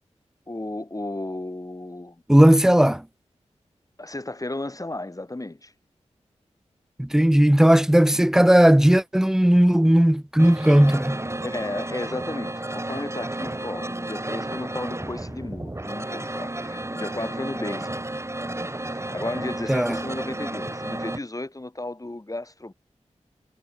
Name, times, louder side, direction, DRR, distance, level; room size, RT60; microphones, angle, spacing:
voice 1, 0.5-2.2 4.0-5.7 7.4-7.5 11.4-18.1 18.9-22.7, left 2 dB, 30° left, 7.6 m, -34 dB
voice 2, 2.3-3.0 7.0-11.2 19.7-20.0, equal, 5° right, 0.5 m, -16 dB
sound 1, 10.4-21.2, right 1 dB, 20° right, 3.1 m, -32 dB
cardioid pair, 45°, 12 cm